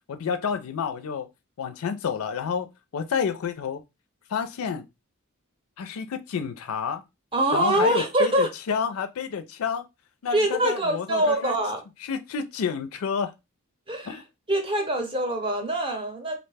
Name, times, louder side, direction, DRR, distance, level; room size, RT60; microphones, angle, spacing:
voice 1, 0.1-1.3 1.6-3.8 4.3-4.8 5.8-7.0 7.5-9.8 10.2-11.6 12.0-13.3 14.0-14.2, left 6 dB, 70° left, 0.4 m, -29 dB
voice 2, 7.3-8.5 10.3-11.8 13.9-14.2 14.5-16.4, right 1 dB, 25° right, 0.6 m, -24 dB
2.6 x 2.1 x 3.3 m
head